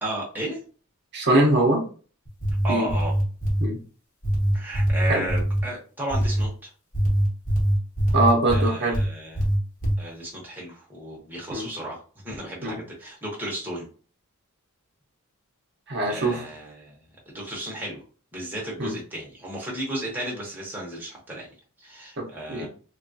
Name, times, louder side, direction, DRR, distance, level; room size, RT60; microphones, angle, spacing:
voice 1, 0.0-0.6 2.6-3.1 4.5-6.7 8.1-8.2 8.5-9.4 10.0-13.9 16.0-17.0 17.3-18.0 18.3-21.5 21.8-22.7, right 1 dB, 10° right, -4 dB, 0.8 m, -34 dB
voice 2, 1.1-1.8 2.7-2.9 3.6-3.8 5.1-5.2 8.1-8.9 11.5-11.7 12.6-12.8 15.9-16.5 18.8-19.0 22.2-22.7, right 2 dB, 50° right, 1 dB, 0.7 m, -22 dB
sound 1, 2.3-3.7 4.2-5.6 6.1-6.5 6.9-9.1 9.4-10.0, equal, 35° left, 0.9 m, -22 dB
3.4 x 2.3 x 2.5 m, 0.39 s
head